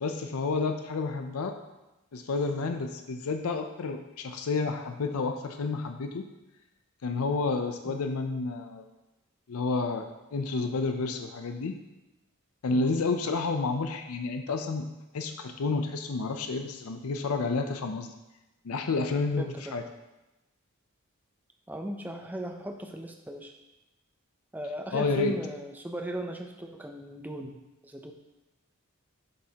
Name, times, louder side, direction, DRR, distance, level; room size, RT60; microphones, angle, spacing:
voice 1, 0.0-1.6 2.1-6.3 7.0-8.8 9.5-11.8 12.6-14.9 15.1-18.1 18.6-19.5 19.7-19.8 24.9-25.4, left 3 dB, 90° left, 6 dB, 0.5 m, -30 dB
voice 2, 19.4-19.8 21.7-23.5 24.5-27.6 27.8-28.1, right 1 dB, 10° right, 4 dB, 0.5 m, -37 dB
7.7 x 6.3 x 2.9 m, 1.0 s
head